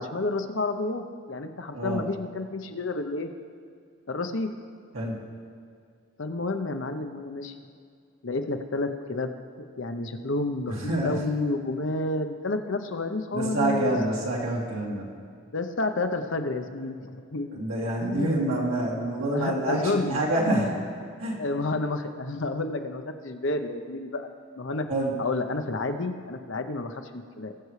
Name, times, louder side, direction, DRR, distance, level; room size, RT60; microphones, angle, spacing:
voice 1, 0.0-3.3 4.1-4.5 6.2-7.6 8.2-9.3 9.8-14.0 15.5-17.6 18.0-18.5 19.3-20.2 21.4-24.3 24.6-24.9 25.2-27.5, left 2 dB, 65° left, 6 dB, 0.8 m, -30 dB
voice 2, 10.7-11.1 13.3-15.0 17.5-20.7 21.2-21.4 24.9-25.2, right 1 dB, 75° right, -4 dB, 2.2 m, -27 dB
20.0 x 6.8 x 3.2 m, 2.2 s
head